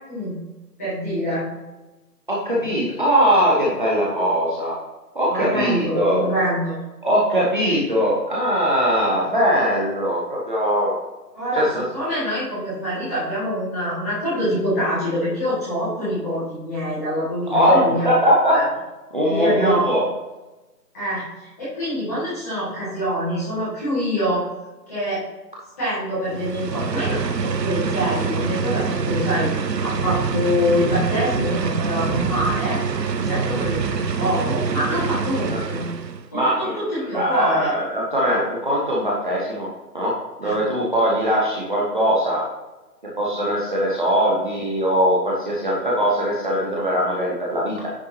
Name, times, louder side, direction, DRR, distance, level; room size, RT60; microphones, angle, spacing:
voice 1, 0.8-1.5 2.5-2.6 5.3-6.8 11.3-18.1 18.5-18.6 19.3-19.8 20.9-24.5 24.9-25.3 25.8-32.8 33.2-35.9 36.3-37.7 40.4-40.6, equal, 10° left, -11 dB, 1.9 m, -25 dB
voice 2, 2.3-4.7 5.1-6.2 7.0-10.9 11.5-11.8 17.5-18.6 19.1-20.0 35.5-35.6 36.3-36.8 37.1-39.7 39.9-40.1 40.4-42.4 43.2-47.9, equal, 30° right, -5 dB, 1.2 m, -20 dB
sound 1, 26.3-36.3, right 5 dB, 80° right, 0.8 m, -25 dB
9.8 x 4.7 x 2.8 m, 1.1 s
figure-of-eight pair, 165°, 49 cm